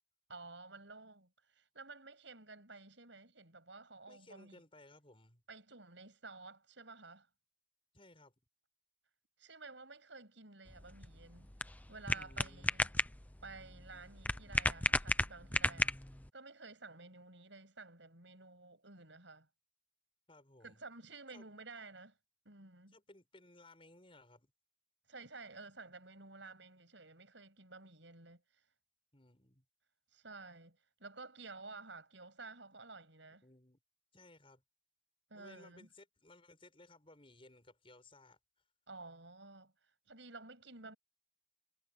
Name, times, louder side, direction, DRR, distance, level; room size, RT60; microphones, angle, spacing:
voice 1, 0.3-4.6 5.5-7.3 9.4-11.5 11.9-12.9 13.4-16.1 16.3-19.5 20.6-22.2 22.4-23.0 25.1-28.6 30.1-33.4 35.3-35.9 38.9-41.0, right 3 dB, 70° right, 7.6 m, -53 dB
voice 2, 4.1-5.4 7.9-8.3 12.1-12.7 20.3-20.8 21.3-21.5 22.9-24.5 29.1-29.6 33.3-33.8 34.1-34.6 35.3-38.4, left 2 dB, 30° left, 7.2 m, -60 dB
sound 1, 10.7-16.3, left 2 dB, 10° left, 0.7 m, -35 dB
head